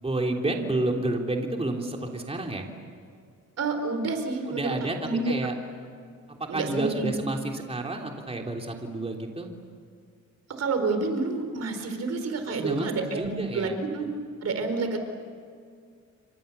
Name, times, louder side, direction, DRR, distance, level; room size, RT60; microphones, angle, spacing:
voice 1, 0.0-2.7 4.5-5.5 6.3-9.5 12.5-13.8, right 2 dB, 20° right, 1 dB, 3.3 m, -30 dB
voice 2, 3.6-4.7 5.0-5.3 6.5-7.2 10.5-14.1 14.4-15.0, right 3 dB, 55° right, 7 dB, 4.8 m, -29 dB
30.0 x 25.0 x 6.9 m, 2.2 s
cardioid pair, 90°, 30 cm